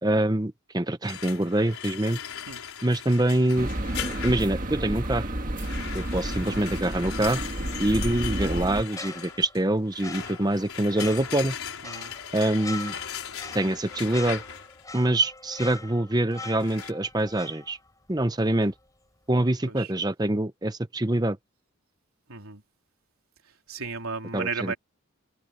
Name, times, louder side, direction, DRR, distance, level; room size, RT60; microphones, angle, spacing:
voice 1, 0.0-2.2 2.8-3.7 4.0-5.3 5.9-7.5 7.8-11.5 12.3-12.9 13.5-14.4 14.9-17.8 18.1-18.7 19.3-21.4 24.3-24.7, right 1 dB, 20° right, 0.8 m, -25 dB
sound 1, 1.0-4.7 5.6-14.8 16.6-16.9, left 8 dB, 85° left, 5.0 m, -38 dB
sound 2, 3.6-8.8, right 1 dB, 40° right, 1.7 m, -31 dB
sound 3, 8.8-18.2 18.5-18.7, left 3 dB, 15° left, 5.0 m, -43 dB
voice 2, 11.8-12.1 19.7-19.9 22.3-22.6 23.7-24.8, right 5 dB, 85° right, 3.5 m, -34 dB
head